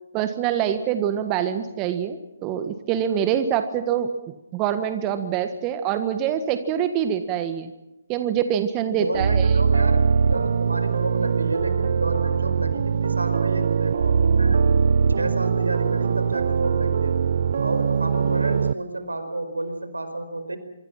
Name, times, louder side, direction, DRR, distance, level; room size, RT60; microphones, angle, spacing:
voice 1, 0.1-4.1 4.5-7.7 8.1-9.6, right 9 dB, 25° right, 9 dB, 1.5 m, -25 dB
voice 2, 8.8-14.7 15.2-17.2 17.6-20.6, right 2 dB, 85° right, 9 dB, 4.8 m, -30 dB
sound 1, 9.1-18.7, right 6 dB, 55° right, 0.8 m, -21 dB
25.5 x 24.0 x 5.8 m, 0.95 s
figure-of-eight pair, 135°, 0 cm